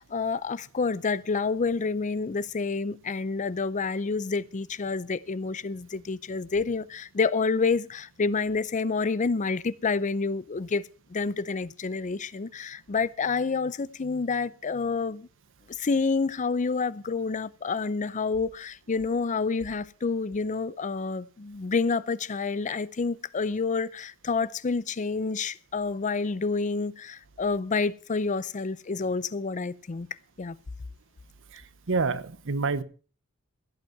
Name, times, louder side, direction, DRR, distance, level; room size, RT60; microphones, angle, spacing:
voice 1, 0.0-10.8 11.1-15.3 15.8-30.1 30.4-30.6, left 4 dB, 35° left, 0.5 m, -28 dB
voice 2, 31.9-32.8, right 4 dB, 65° right, 0.9 m, -27 dB
16.0 x 8.1 x 5.8 m
head